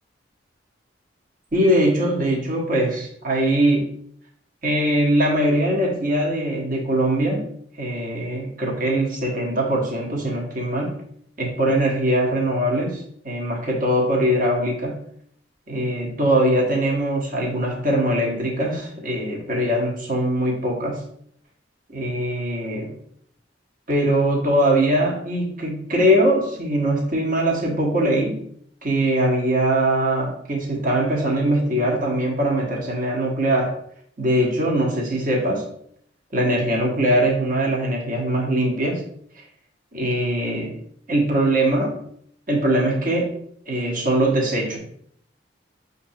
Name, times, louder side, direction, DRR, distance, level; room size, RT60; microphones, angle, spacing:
voice 1, 1.5-3.9 4.6-7.5 7.8-10.9 11.4-15.0 15.7-21.0 21.9-22.9 23.9-28.4 28.8-33.7 34.2-35.6 36.3-39.0 39.9-40.8 41.1-42.0 42.5-43.4 43.7-44.8, right 1 dB, 45° right, -2 dB, 1.2 m, -21 dB
5.9 x 2.7 x 2.7 m, 0.66 s
head